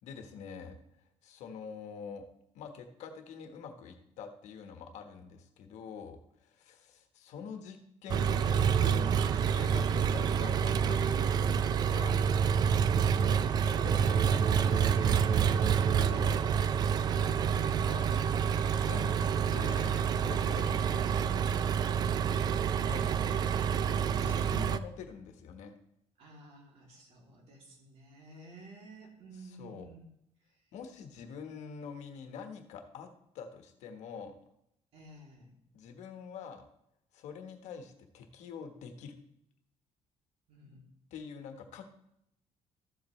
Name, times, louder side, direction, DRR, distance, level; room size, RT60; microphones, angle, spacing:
voice 1, 0.0-2.2 2.5-12.2 13.0-15.6 15.9-16.6 17.1-18.1 18.7-21.8 22.9-23.6 24.2-25.8 29.4-29.9 30.7-33.1 33.3-34.3 35.7-36.7 37.1-39.2 41.1-42.0, left 6 dB, 75° left, 6 dB, 1.3 m, -46 dB
Engine, 8.1-24.8, right 7 dB, 35° right, 0.3 m, -28 dB
voice 2, 26.2-30.1 30.5-30.7 34.9-35.5 40.5-40.9, right 2 dB, 55° right, -1 dB, 3.0 m, -53 dB
13.5 x 7.7 x 3.2 m, 0.78 s
cardioid pair, 175°, 12 cm